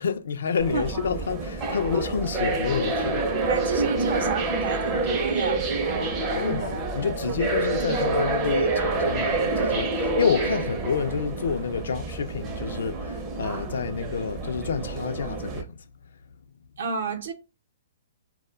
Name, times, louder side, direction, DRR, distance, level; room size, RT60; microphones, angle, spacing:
voice 1, 0.0-3.3 6.4-15.8, left 6 dB, 80° left, 0.4 m, -28 dB
sound 1, 0.6-15.6, right 3 dB, 20° right, 0.5 m, -27 dB
voice 2, 3.5-6.3 7.3-7.4 16.8-17.3, right 5 dB, 75° right, 0.6 m, -31 dB
2.1 x 2.1 x 3.3 m
hypercardioid pair, 160°, 0 cm